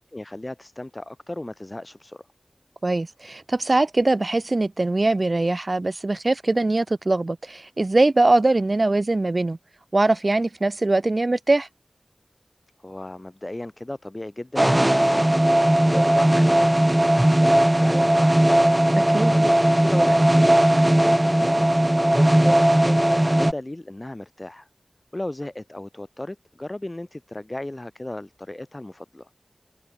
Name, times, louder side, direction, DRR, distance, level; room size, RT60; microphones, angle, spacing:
voice 1, 0.0-2.2 12.8-15.6 15.8-18.5 19.3-22.7 23.2-24.7 25.1-29.3, left 1 dB, 25° left, 5.4 m, -36 dB
voice 2, 2.8-9.6 9.9-11.7 18.9-19.3, right 2 dB, 45° right, 0.9 m, -22 dB
sound 1, 14.6-23.5, right 1 dB, 15° right, 0.6 m, -18 dB
wide cardioid pair, 65°, 0 cm